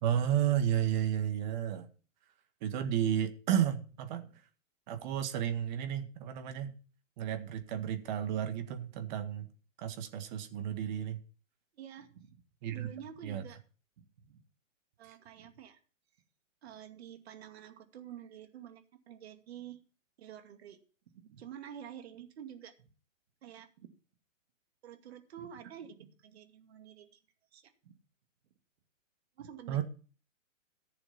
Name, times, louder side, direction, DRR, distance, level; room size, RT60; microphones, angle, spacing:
voice 1, 0.0-1.9 2.6-4.3 4.9-6.7 7.2-9.5 9.8-11.2 12.6-12.9 13.2-13.4 29.7-29.8, right 10 dB, 35° right, 1.8 m, -32 dB
voice 2, 11.7-12.4 12.7-13.6 14.2-14.4 15.0-15.8 16.6-19.8 20.2-20.8 21.1-22.9 23.4-23.9 24.8-27.2 27.5-27.9 29.4-29.8, right 9 dB, 50° right, 2.4 m, -49 dB
15.0 x 7.0 x 5.7 m
hypercardioid pair, 140°, 39 cm